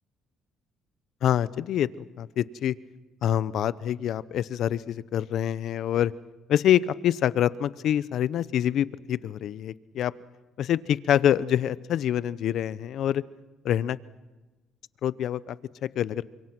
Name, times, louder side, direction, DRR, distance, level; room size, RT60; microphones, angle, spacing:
voice 1, 1.2-2.7 3.2-6.1 6.5-10.1 10.6-13.2 13.6-14.0 15.0-15.6 15.9-16.2, left 10 dB, 65° left, 18 dB, 0.8 m, -26 dB
29.0 x 25.5 x 6.1 m, 1.1 s
cardioid pair, 110°, 0 cm